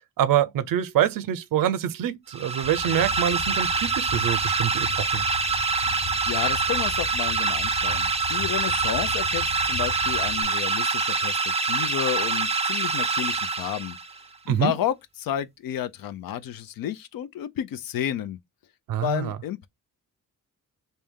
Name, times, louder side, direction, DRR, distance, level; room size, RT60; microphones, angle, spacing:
voice 1, 0.2-5.2 14.5-14.7 18.9-19.4, right 10 dB, 80° right, 0.5 m, -25 dB
sound 1, 2.3-14.2, right 4 dB, 20° right, 0.4 m, -25 dB
sound 2, 2.6-10.4, left 5 dB, 45° left, 0.6 m, -39 dB
voice 2, 6.3-14.0 14.5-18.4 19.0-19.7, left 11 dB, 90° left, 0.6 m, -31 dB
3.3 x 2.7 x 3.5 m
cardioid pair, 115°, 33 cm